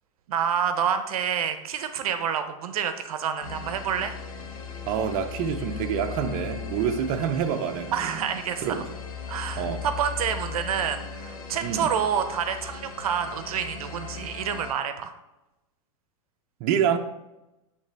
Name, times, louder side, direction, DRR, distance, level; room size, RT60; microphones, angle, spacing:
voice 1, 0.3-4.1 7.9-8.8 9.3-15.1, right 8 dB, 85° right, 9 dB, 0.7 m, -28 dB
sound 1, 3.4-14.7, left 6 dB, 75° left, 1.4 m, -38 dB
voice 2, 4.9-8.2 8.6-8.8 9.6-9.8 11.6-11.9 16.6-17.0, right 8 dB, 50° right, 5 dB, 0.7 m, -27 dB
10.0 x 3.4 x 3.4 m, 0.95 s
supercardioid pair, 130°, 18 cm